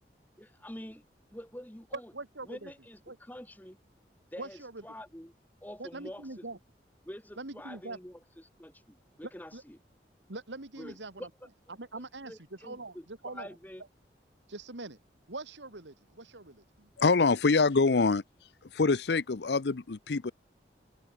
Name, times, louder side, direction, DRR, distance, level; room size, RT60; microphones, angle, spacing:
voice 1, 0.4-1.0 1.3-2.1 2.4-3.8 4.3-5.3 5.6-6.3 7.0-9.8 10.8-11.3 12.2-13.8, equal, 10° left, 1.5 m, -46 dB
voice 2, 1.9-2.7 3.1-3.2 4.4-4.8 5.8-6.6 7.4-8.0 9.5-9.6 10.3-11.3 11.7-13.5 14.5-15.0 15.3-16.9, right 2 dB, 90° right, 2.4 m, -43 dB
voice 3, 17.0-18.2 18.7-20.3, left 4 dB, 75° left, 0.7 m, -25 dB
head